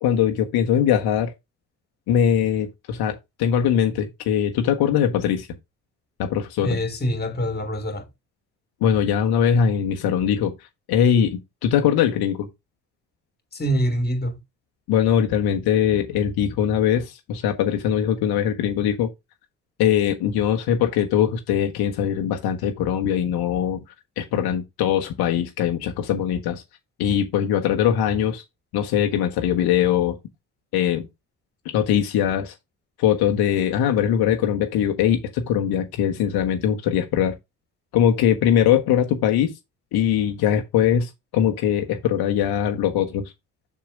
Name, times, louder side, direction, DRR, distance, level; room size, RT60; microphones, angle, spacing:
voice 1, 0.0-1.3 2.1-5.5 6.2-6.8 8.8-12.5 14.9-19.1 19.8-23.8 24.2-26.6 27.0-28.4 28.7-30.2 30.7-31.0 31.6-32.5 33.0-37.3 37.9-39.5 39.9-43.3, left 9 dB, 55° left, 1.2 m, -21 dB
voice 2, 6.6-8.0 13.5-14.4, equal, 20° left, 2.1 m, -25 dB
7.2 x 6.7 x 2.5 m
figure-of-eight pair, 45°, 44 cm